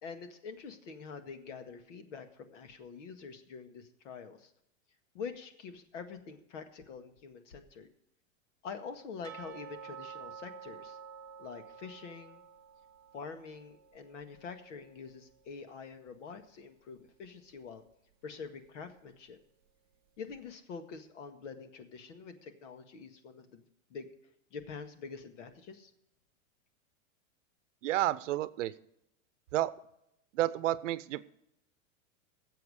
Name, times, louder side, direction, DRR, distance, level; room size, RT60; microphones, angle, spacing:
voice 1, 0.0-4.5 5.1-7.9 8.6-11.0 11.4-12.4 13.1-17.8 18.2-19.4 20.2-23.6 23.9-24.1 24.5-25.9, left 5 dB, 65° left, 8 dB, 1.9 m, -46 dB
sound 1, 9.2-16.1 16.4-16.5 17.0-17.1 17.6-17.7, right 7 dB, 20° right, 0.3 m, -50 dB
voice 2, 27.8-28.7 29.5-29.7 30.3-31.2, right 14 dB, 65° right, 16 dB, 0.8 m, -30 dB
17.5 x 7.7 x 4.9 m, 0.79 s
supercardioid pair, 170°, 40 cm